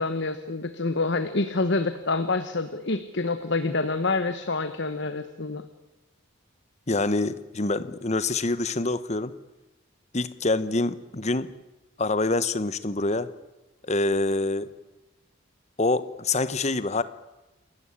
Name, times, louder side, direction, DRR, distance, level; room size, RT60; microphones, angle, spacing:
voice 1, 0.0-5.6, left 3 dB, 55° left, 1.2 m, -27 dB
voice 2, 6.9-9.3 10.1-11.5 12.0-13.3 13.9-14.7 15.8-17.0, left 2 dB, 30° left, 1.0 m, -26 dB
28.0 x 14.5 x 9.9 m
head